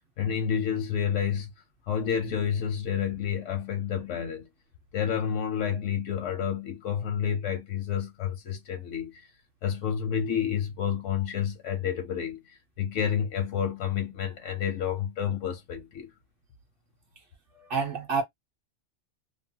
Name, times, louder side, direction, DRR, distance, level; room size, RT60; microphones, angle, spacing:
voice 1, 0.2-1.5 1.9-4.5 4.9-9.2 9.6-12.4 12.8-16.1, left 8 dB, 90° left, 1.1 m, -29 dB
voice 2, 17.5-18.2, right 5 dB, 50° right, 1.0 m, -28 dB
3.0 x 2.1 x 2.7 m
omnidirectional pair, 1.2 m